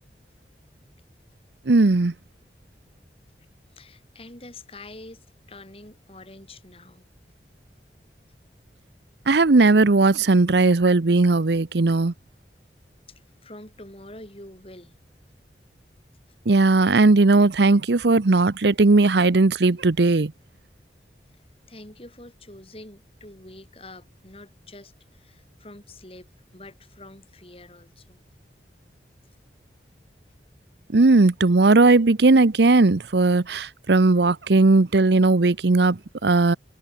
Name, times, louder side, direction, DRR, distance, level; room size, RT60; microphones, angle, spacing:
voice 1, 1.7-2.1 9.3-12.1 16.5-20.3 30.9-36.6, right 3 dB, 75° right, 0.8 m, -17 dB
voice 2, 3.7-7.1 13.1-14.9 21.7-28.2, left 2 dB, 30° left, 4.5 m, -46 dB
head